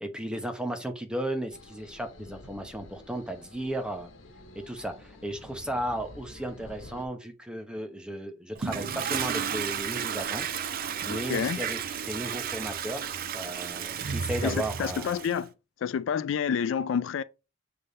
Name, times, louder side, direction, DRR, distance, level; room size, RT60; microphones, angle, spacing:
voice 1, 0.0-4.1 4.7-10.5 11.0-11.8 12.1-13.1 13.3-15.1, right 1 dB, 5° right, 0.9 m, -34 dB
sound 1, 1.5-7.1, left 1 dB, 90° left, 1.1 m, -49 dB
Toilet flush, 8.6-15.4, right 7 dB, 50° right, 0.5 m, -33 dB
voice 2, 11.1-11.6 14.4-15.5 15.8-17.2, left 7 dB, 70° left, 0.3 m, -29 dB
6.8 x 3.6 x 4.0 m
head